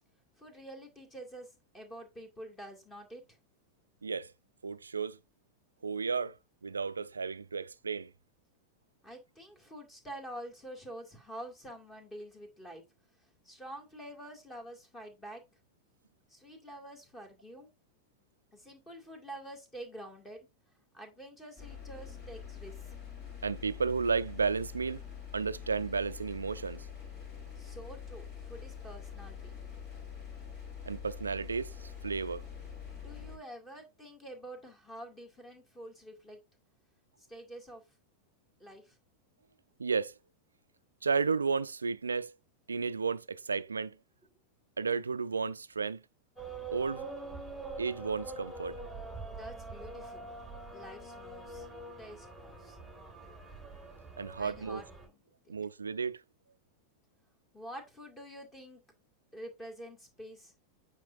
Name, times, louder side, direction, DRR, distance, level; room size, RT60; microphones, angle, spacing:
voice 1, 0.4-3.4 9.0-12.8 13.2-15.4 16.3-17.7 18.5-20.4 20.9-22.9 27.6-29.5 32.9-36.4 37.2-37.8 38.6-39.0 49.3-50.3 50.7-51.7 52.0-52.8 54.3-55.2 55.4-55.5 57.5-58.8 59.3-60.5, right 1 dB, 15° left, 2.2 m, -47 dB
voice 2, 4.0-4.3 4.6-5.2 5.8-6.4 6.6-8.1 23.4-25.0 25.3-26.9 30.9-32.5 39.8-40.1 41.0-42.3 42.7-44.0 44.8-46.0 46.7-47.1 47.8-48.8 54.2-54.8 55.5-56.2, right 5 dB, 75° right, 0.3 m, -33 dB
sound 1, 21.6-33.4, left 7 dB, 40° left, 3.4 m, -45 dB
sound 2, 46.4-55.1, right 3 dB, 5° right, 1.6 m, -44 dB
8.9 x 4.4 x 2.6 m
figure-of-eight pair, 90°, 0 cm